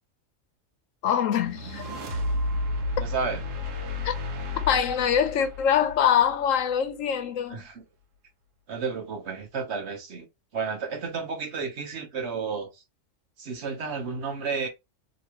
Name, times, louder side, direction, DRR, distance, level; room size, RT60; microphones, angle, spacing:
voice 1, 1.0-1.9 4.0-4.1 4.7-7.7, left 8 dB, 85° left, 1.0 m, -24 dB
sound 1, 1.4-6.7, left 2 dB, 80° right, 1.2 m, -32 dB
voice 2, 3.0-3.4 7.5-7.8 8.7-10.3 10.5-12.8 13.4-14.7, right 5 dB, 60° right, 1.2 m, -32 dB
3.0 x 2.8 x 2.9 m
omnidirectional pair, 1.3 m